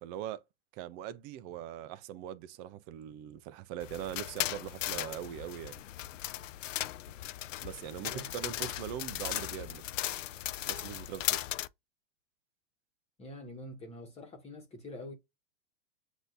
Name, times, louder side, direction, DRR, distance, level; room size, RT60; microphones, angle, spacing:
voice 1, 0.0-0.4 0.7-5.8 7.6-9.8 10.6-11.4, right 11 dB, 25° right, 0.4 m, -41 dB
sound 1, 3.8-11.7, left 14 dB, 85° left, 0.5 m, -37 dB
voice 2, 8.1-8.6 13.2-15.1, left 1 dB, 15° left, 1.4 m, -46 dB
7.7 x 2.7 x 2.5 m
hypercardioid pair, 130°, 37 cm